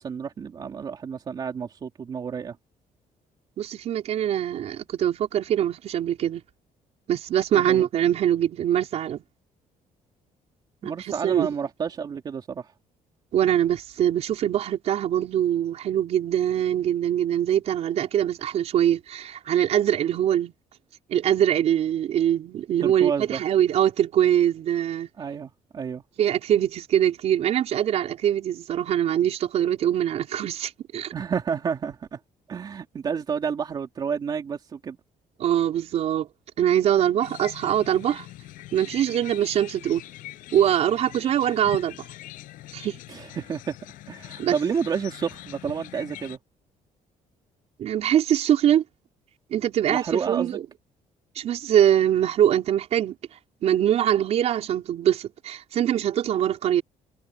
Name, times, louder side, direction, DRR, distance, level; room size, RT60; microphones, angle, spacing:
voice 1, 0.0-2.6 7.5-7.9 10.8-12.7 22.8-23.4 25.2-26.0 31.1-32.2 32.5-35.0 43.1-43.7 44.1-46.4 49.9-50.6, right 6 dB, 30° right, 3.3 m, -30 dB
voice 2, 3.6-6.4 7.1-9.2 10.8-11.5 13.3-20.5 21.1-25.1 26.2-31.1 35.4-36.3 36.6-38.2 38.7-40.0 40.5-42.0 42.7-43.0 44.4-44.6 47.8-48.8 49.5-50.6 51.3-53.2 53.6-56.8, right 10 dB, 50° right, 4.9 m, -23 dB
sound 1, 37.2-46.4, left 16 dB, 90° left, 6.9 m, -43 dB
cardioid pair, 175°, 14 cm